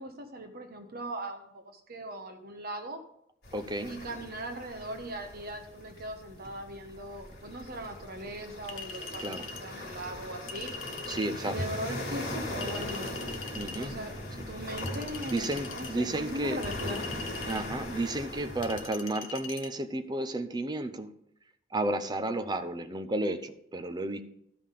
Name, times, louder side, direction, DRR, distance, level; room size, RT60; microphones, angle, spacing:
voice 1, 0.0-3.0 3.8-10.7 11.4-13.1 13.8-14.1 14.5-17.0, right 1 dB, 50° right, 5 dB, 1.1 m, -39 dB
sound 1, 3.4-18.9, left 1 dB, 55° left, 3.7 m, -40 dB
voice 2, 3.5-3.9 9.2-9.4 11.1-11.6 13.5-13.9 14.4-14.5 15.3-16.6 17.5-21.1 21.7-24.2, right 1 dB, 20° right, 9 dB, 0.6 m, -32 dB
Chink clink, 8.7-9.7 10.5-11.3 12.6-13.9 14.8-15.9 16.6-17.7 18.6-19.7, left 5 dB, 90° left, 1.1 m, -42 dB
13.0 x 5.6 x 5.1 m, 0.74 s
head